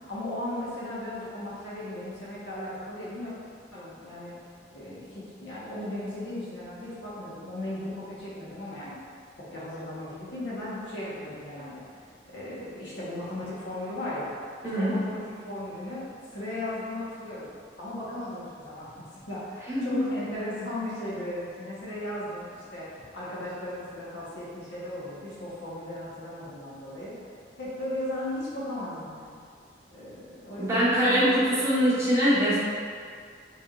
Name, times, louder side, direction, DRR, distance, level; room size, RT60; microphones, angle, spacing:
voice 1, 0.0-3.3 3.7-4.4 4.7-9.0 9.4-14.3 14.6-16.1 16.3-17.5 17.8-27.1 27.6-29.4 29.9-31.7, left 1 dB, 75° left, -8 dB, 1.1 m, -36 dB
voice 2, 14.6-15.0 19.7-20.0 30.6-32.6, equal, 15° right, -11 dB, 0.9 m, -23 dB
4.2 x 3.3 x 2.4 m, 2.2 s
head